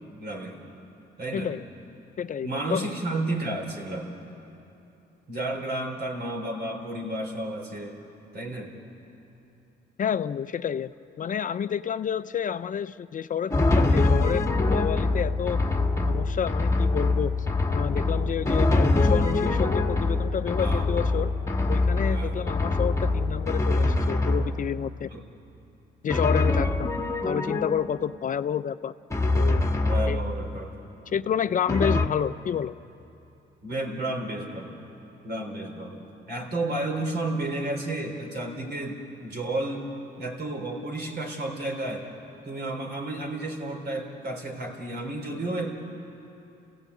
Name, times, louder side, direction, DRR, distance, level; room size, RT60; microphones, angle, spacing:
voice 1, 0.2-0.6 1.2-1.5 2.4-4.1 5.3-8.0 8.3-8.7 20.6-20.8 22.1-22.4 25.1-25.2 26.6-26.7 29.8-30.7 31.9-32.0 33.6-34.8 35.2-39.9 40.2-42.1 42.4-45.8, right 2 dB, 55° right, 2 dB, 4.0 m, -32 dB
voice 2, 2.2-2.8 10.0-10.9 11.2-15.6 16.1-17.3 17.7-21.3 21.7-25.1 26.0-28.9 29.4-29.6 30.1-30.2 31.1-32.7, left 8 dB, 40° left, 13 dB, 0.4 m, -29 dB
Drum, 13.5-24.9 26.1-28.1 29.1-30.6 31.7-32.1, left 2 dB, 15° left, 1.5 m, -24 dB
29.0 x 16.5 x 8.4 m, 2.8 s
cardioid pair, 90°, 20 cm